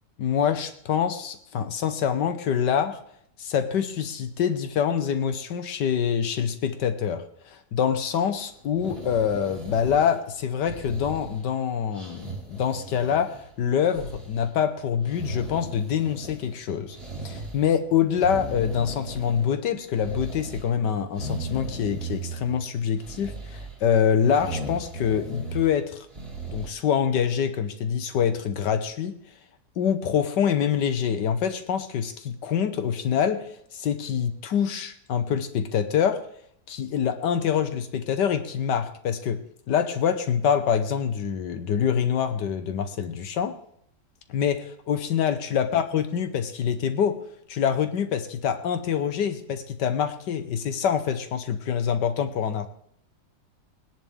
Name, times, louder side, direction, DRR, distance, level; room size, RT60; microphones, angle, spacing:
voice 1, 0.2-3.0 3.4-17.0 17.2-26.1 26.5-29.2 29.8-36.2 36.7-39.4 39.7-43.6 44.3-47.2 47.5-52.7, left 8 dB, 80° left, 9 dB, 1.6 m, -25 dB
sound 1, 8.7-10.3 10.7-11.5 11.9-13.5 13.8-14.5 15.1-16.6 16.9-17.7 18.1-19.6 19.9-20.7 21.2-22.6 23.0-23.8 24.3-25.7 26.1-26.7, right 2 dB, 35° right, 2.6 m, -37 dB
20.0 x 10.5 x 3.6 m, 0.71 s
omnidirectional pair, 1.9 m